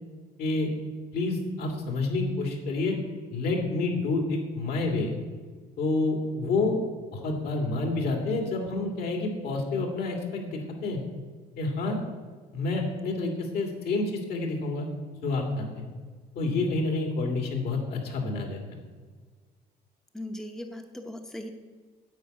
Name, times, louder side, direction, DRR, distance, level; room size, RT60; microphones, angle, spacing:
voice 1, 0.4-0.7 1.1-3.0 3.3-5.1 5.8-6.8 7.1-11.0 11.6-12.0 12.5-14.9 15.2-15.8 16.3-18.8, left 3 dB, 65° left, 1 dB, 2.5 m, -28 dB
voice 2, 20.1-21.5, left 1 dB, 5° left, 4 dB, 0.8 m, -38 dB
9.4 x 5.6 x 8.3 m, 1.5 s
cardioid pair, 110°, 17 cm